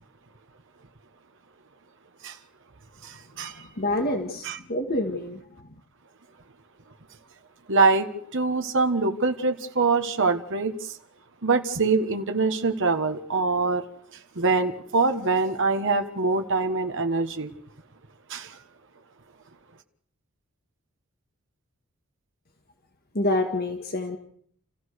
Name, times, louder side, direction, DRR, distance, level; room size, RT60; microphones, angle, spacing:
voice 1, 3.0-3.7 4.4-4.6 7.7-11.0 11.4-13.8 14.3-17.5 18.3-18.6, right 3 dB, 55° right, 1.5 m, -24 dB
voice 2, 3.8-5.4 23.1-24.2, left 1 dB, 45° left, 2.0 m, -27 dB
29.0 x 15.0 x 6.5 m
head